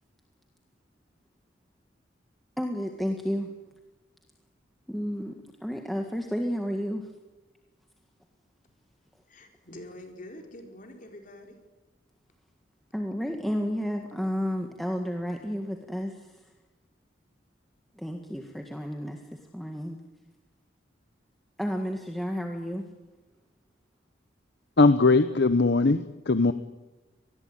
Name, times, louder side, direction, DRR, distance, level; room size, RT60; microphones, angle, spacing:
voice 1, 2.6-3.5 4.9-7.1 12.9-16.5 17.9-20.0 21.6-22.9, equal, ahead, 3 dB, 1.7 m, -32 dB
voice 2, 9.3-11.6, left 1 dB, 45° left, 3 dB, 4.8 m, -45 dB
voice 3, 24.8-26.5, left 3 dB, 60° left, 11 dB, 0.9 m, -20 dB
25.5 x 20.0 x 9.0 m, 1.1 s
head